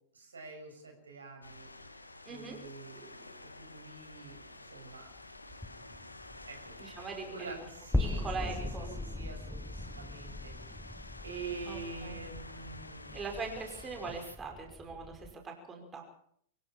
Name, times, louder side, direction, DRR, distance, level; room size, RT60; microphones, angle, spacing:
voice 1, 0.1-1.7 2.3-5.1 5.6-5.9 6.5-6.7 7.3-13.2, right 4 dB, 80° right, 3 dB, 6.9 m, -46 dB
sound 1, 1.4-14.4, left 2 dB, 90° left, 1.8 m, -50 dB
voice 2, 2.3-2.6 6.8-7.7 7.9-8.9 11.7-12.2 13.1-16.0, right 4 dB, 20° right, 2 dB, 5.4 m, -41 dB
sound 2, 4.4-4.5 4.8-15.4, left 2 dB, 5° left, 1.0 m, -40 dB
24.0 x 15.5 x 7.4 m, 0.65 s
figure-of-eight pair, 100°, 0 cm